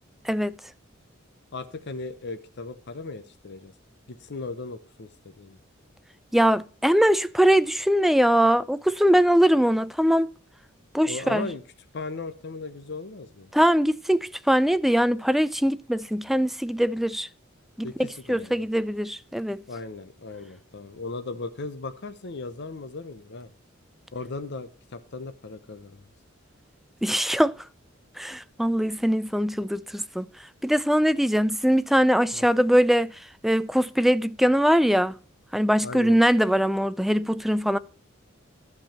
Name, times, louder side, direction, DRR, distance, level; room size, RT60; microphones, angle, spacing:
voice 1, 1.5-3.7 4.1-5.6 11.0-11.6 11.9-13.5 17.8-18.7 19.7-23.5 24.1-26.0 32.3-32.5 35.8-36.2, left 3 dB, 60° left, 0.8 m, -37 dB
voice 2, 6.3-10.3 10.9-11.5 13.5-17.3 17.8-19.6 27.0-27.5 28.2-30.3 30.6-33.1 33.4-35.1 35.5-37.8, equal, ahead, 0.4 m, -22 dB
12.0 x 7.1 x 4.3 m
head